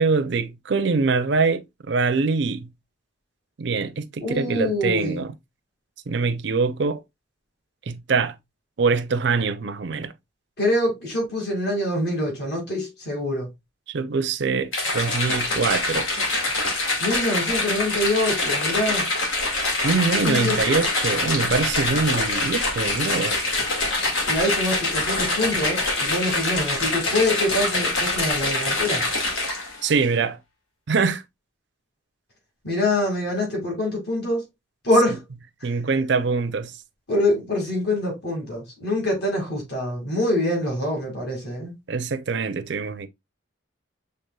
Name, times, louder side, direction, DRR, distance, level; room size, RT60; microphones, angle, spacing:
voice 1, 0.0-2.7 3.6-5.3 6.1-7.0 7.9-8.4 8.8-10.1 13.9-16.1 19.8-23.4 29.8-30.4 30.9-31.2 35.6-36.7 41.9-43.1, right 4 dB, 60° right, 0.5 m, -24 dB
voice 2, 4.2-5.2 10.6-13.5 17.0-19.1 20.2-20.6 24.3-29.0 32.6-34.5 34.8-35.2 35.6-35.7 37.1-41.7, left 1 dB, 55° left, 2.1 m, -25 dB
sound 1, 14.7-29.8, left 2 dB, 80° left, 1.7 m, -24 dB
6.6 x 3.4 x 2.3 m
head